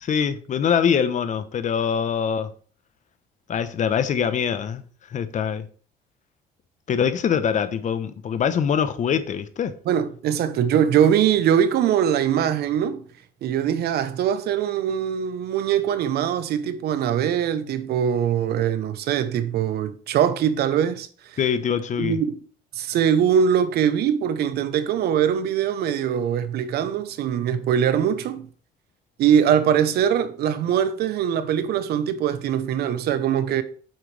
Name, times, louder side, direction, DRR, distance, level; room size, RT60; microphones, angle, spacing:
voice 1, 0.0-2.5 3.5-4.8 5.1-5.6 6.9-9.7 21.4-22.2, left 7 dB, 45° left, 1.0 m, -23 dB
voice 2, 9.9-13.0 13.4-21.4 22.0-22.4 22.8-28.5 29.2-33.6, right 9 dB, 70° right, 1.0 m, -22 dB
9.3 x 7.7 x 3.4 m
cardioid pair, 110°, 17 cm